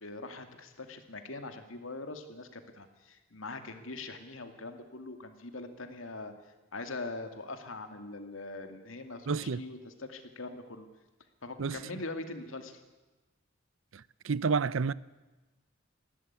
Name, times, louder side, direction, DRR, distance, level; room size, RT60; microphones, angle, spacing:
voice 1, 0.0-6.3 6.7-10.9 11.4-12.8, left 2 dB, 75° left, 2.4 m, -42 dB
voice 2, 9.3-9.6 11.6-11.8 13.9-14.9, right 5 dB, 75° right, 0.6 m, -30 dB
19.5 x 16.5 x 9.7 m
head